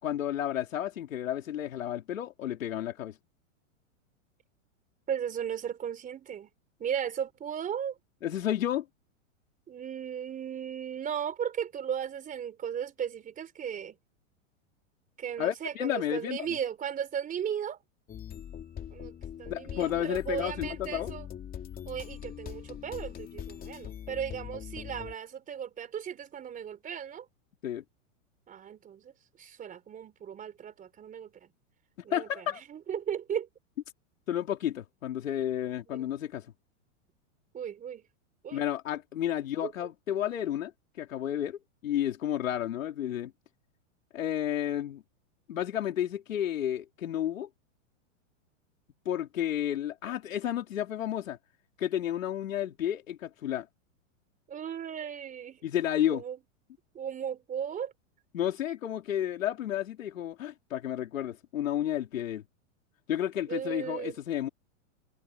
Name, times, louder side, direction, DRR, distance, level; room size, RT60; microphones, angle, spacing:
voice 1, 0.0-3.2 8.2-8.9 15.4-16.5 19.5-21.1 27.6-27.8 32.1-32.6 34.3-36.5 38.5-40.7 41.0-43.3 44.1-45.0 45.5-47.5 49.1-51.4 51.8-53.7 55.6-56.2 58.3-62.4 63.1-64.5, left 11 dB, 85° left, 3.7 m, -31 dB
voice 2, 5.1-6.5 6.8-8.0 9.7-14.0 15.2-17.8 18.9-19.1 19.4-21.3 21.9-27.3 28.5-29.1 29.4-31.5 32.0-32.4 32.7-33.5 35.9-36.1 37.5-38.0 38.4-38.6 39.6-39.7 54.5-55.6 56.1-56.4 56.9-57.9 63.5-64.2, right 8 dB, 20° right, 4.0 m, -36 dB
sound 1, 18.1-25.1, left 9 dB, 20° left, 3.0 m, -42 dB
supercardioid pair, 140°, 38 cm